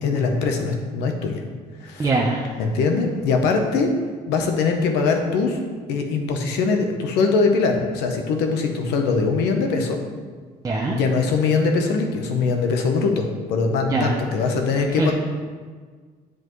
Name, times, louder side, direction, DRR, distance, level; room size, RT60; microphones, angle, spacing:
voice 1, 0.0-1.4 1.8-2.1 2.6-3.9 4.3-5.6 5.9-10.0 10.9-15.1, left 4 dB, 90° left, 4 dB, 0.9 m, -22 dB
voice 2, 2.0-2.5 10.6-10.9 13.9-14.2 15.0-15.1, right 2 dB, 20° right, -3 dB, 0.7 m, -22 dB
7.7 x 5.0 x 3.1 m, 1.5 s
cardioid pair, 110°, 17 cm